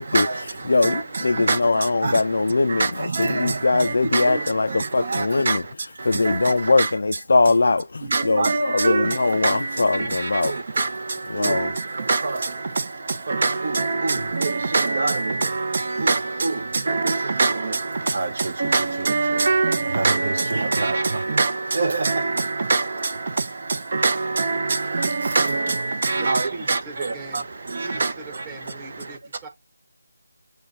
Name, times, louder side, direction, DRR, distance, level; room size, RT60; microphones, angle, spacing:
voice 1, 0.0-6.9 8.0-29.2, right 3 dB, 45° right, 0.6 m, -25 dB
voice 2, 0.7-5.6 6.0-10.5 11.3-11.7, left 3 dB, 55° left, 0.3 m, -21 dB
voice 3, 26.1-27.5 27.8-29.5, right 3 dB, 15° right, 1.1 m, -40 dB
6.9 x 2.7 x 2.8 m
figure-of-eight pair, 160°, 0 cm